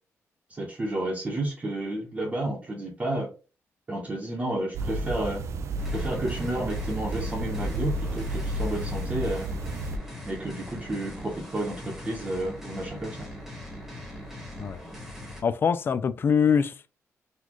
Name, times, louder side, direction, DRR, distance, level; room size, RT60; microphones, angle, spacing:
voice 1, 0.5-3.3 3.9-5.4 5.9-9.5 10.2-13.3, right 1 dB, 25° right, 0.9 m, -31 dB
sound 1, 4.7-10.0, right 1 dB, 65° right, 0.4 m, -32 dB
sound 2, 5.8-15.4, left 1 dB, 5° right, 1.3 m, -41 dB
voice 2, 15.4-16.9, left 6 dB, 45° left, 0.3 m, -24 dB
4.1 x 2.4 x 3.0 m
cardioid pair, 115°, 5 cm